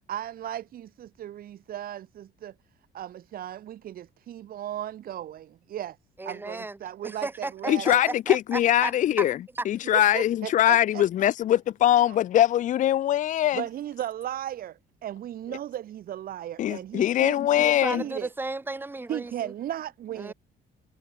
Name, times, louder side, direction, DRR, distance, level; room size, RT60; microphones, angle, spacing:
voice 1, 0.1-2.5 2.9-6.0 6.2-8.0 9.9-11.3 12.1-12.2 13.5-17.6 17.9-18.3 19.1-20.3, right 11 dB, 55° right, 2.8 m, -36 dB
voice 2, 6.2-6.8 7.0-8.9 9.2-9.3 9.5-9.6 17.6-19.5 20.2-20.3, right 2 dB, 10° right, 2.9 m, -34 dB
voice 3, 7.7-9.4 9.7-13.6 16.6-18.0, left 12 dB, 45° left, 0.6 m, -22 dB
cardioid pair, 145°, 18 cm